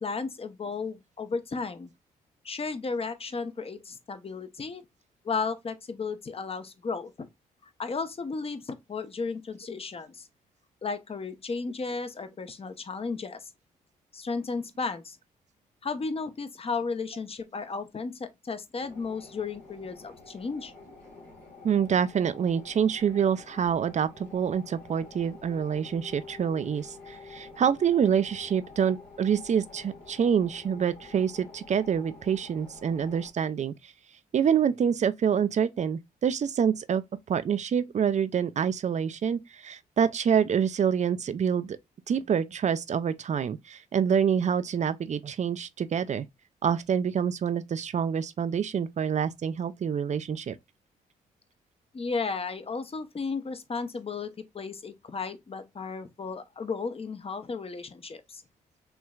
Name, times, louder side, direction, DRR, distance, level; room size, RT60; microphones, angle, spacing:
voice 1, 0.0-1.9 2.4-4.8 5.2-7.3 7.8-10.3 10.8-13.5 14.1-15.2 15.8-20.7 51.9-58.4, left 4 dB, 35° left, 0.8 m, -34 dB
sound 1, 18.8-33.3, left 3 dB, 80° left, 1.7 m, -49 dB
voice 2, 21.6-33.7 34.3-37.0 37.3-41.8 42.1-46.3 46.6-50.6, right 7 dB, 40° right, 0.4 m, -26 dB
4.5 x 3.0 x 2.3 m
hypercardioid pair, 50°, 17 cm